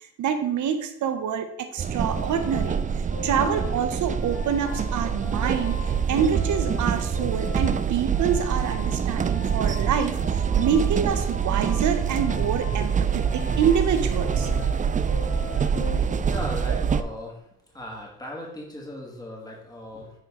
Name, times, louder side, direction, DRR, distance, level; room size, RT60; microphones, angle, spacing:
voice 1, 0.2-2.8 3.2-14.5 16.7-16.8, right 7 dB, 75° right, 8 dB, 1.1 m, -26 dB
sound 1, 1.8-17.0, right 7 dB, 25° right, 0.4 m, -25 dB
sound 2, 2.1-16.7, left 5 dB, 50° left, 1.4 m, -41 dB
voice 2, 16.2-17.4 17.7-20.1, left 1 dB, 15° left, -2 dB, 2.6 m, -37 dB
9.4 x 4.6 x 3.8 m, 0.83 s
cardioid pair, 90°, 30 cm